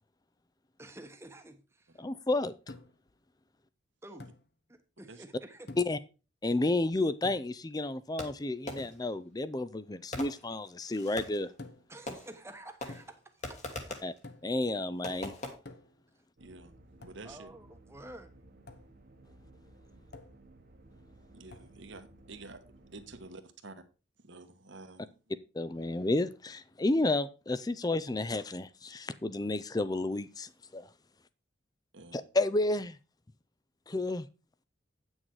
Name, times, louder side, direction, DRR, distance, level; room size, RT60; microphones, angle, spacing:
voice 1, 0.8-2.0 4.0-4.3 4.7-5.7 11.9-13.6 13.9-14.0 17.2-18.3, right 1 dB, 15° right, 7 dB, 1.0 m, -50 dB
voice 2, 2.0-2.5 5.8-6.0 6.4-11.5 14.0-14.1 14.4-15.3 25.5-30.9 32.1-33.0 33.9-34.3, left 2 dB, 20° left, 15 dB, 0.4 m, -31 dB
sound 1, 2.7-3.1 4.2-4.5 5.7-6.1 7.2-7.6 8.8-9.1 11.6-12.0 12.9-13.3 14.2-14.6 15.7-16.1 17.0-17.3 18.7-18.9 20.1-20.5 21.5-21.8, left 2 dB, 55° left, 1.0 m, -49 dB
Fireworks, 8.2-9.1 10.1-11.5 12.1-12.5 12.8-14.2 15.0-15.5, left 1 dB, 35° left, 1.6 m, -42 dB
sound 2, 16.4-23.3, right 1 dB, 45° right, 1.1 m, -57 dB
voice 3, 16.4-16.7 17.0-17.5 21.3-22.6 22.9-23.7 24.2-25.1 31.9-32.2, right 3 dB, 65° right, 9 dB, 1.2 m, -49 dB
9.1 x 6.4 x 4.6 m, 0.32 s
head